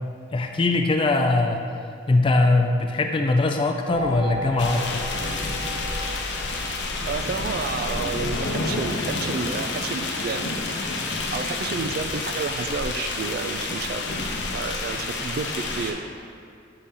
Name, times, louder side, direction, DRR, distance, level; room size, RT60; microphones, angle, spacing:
voice 1, 0.3-1.6 2.1-5.0, left 2 dB, 25° left, 3 dB, 0.3 m, -21 dB
sound 1, 3.9-7.6, equal, 80° right, 0.8 m, -35 dB
sound 2, 4.6-15.9, left 3 dB, 60° left, 0.6 m, -29 dB
voice 2, 7.0-10.5 11.3-14.0 14.5-16.0, right 4 dB, 50° right, 9 dB, 0.3 m, -30 dB
7.7 x 4.1 x 3.7 m, 2.4 s
head